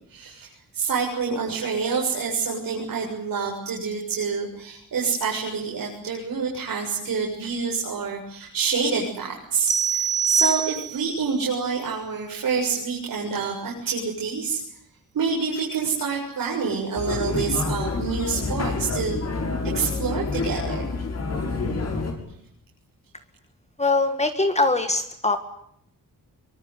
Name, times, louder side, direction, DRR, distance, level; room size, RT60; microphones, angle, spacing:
voice 1, 0.1-14.6 15.1-19.2 19.7-20.8, right 5 dB, 75° right, -2 dB, 7.2 m, -27 dB
sound 1, 9.7-11.2, right 6 dB, 60° right, 2.1 m, -24 dB
sound 2, 17.0-22.1, left 3 dB, 50° left, 6.6 m, -28 dB
voice 2, 23.8-25.4, left 3 dB, 20° left, 8 dB, 1.8 m, -22 dB
25.0 x 24.0 x 9.6 m, 0.70 s
wide cardioid pair, 170°, 34 cm